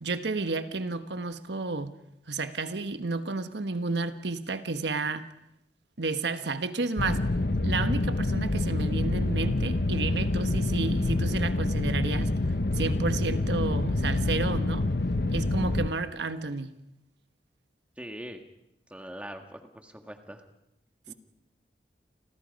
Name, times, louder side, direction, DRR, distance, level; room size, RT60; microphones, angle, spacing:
voice 1, 0.0-2.0 2.3-5.3 6.0-7.2 7.6-12.3 12.7-14.9 15.3-16.7, right 3 dB, 85° right, 10 dB, 1.3 m, -31 dB
sound 1, 7.0-15.9, left 2 dB, 60° left, 1.0 m, -27 dB
voice 2, 18.0-18.4 18.9-20.4 21.1-21.2, equal, 5° right, 5 dB, 1.8 m, -42 dB
30.0 x 25.5 x 5.4 m, 0.85 s
head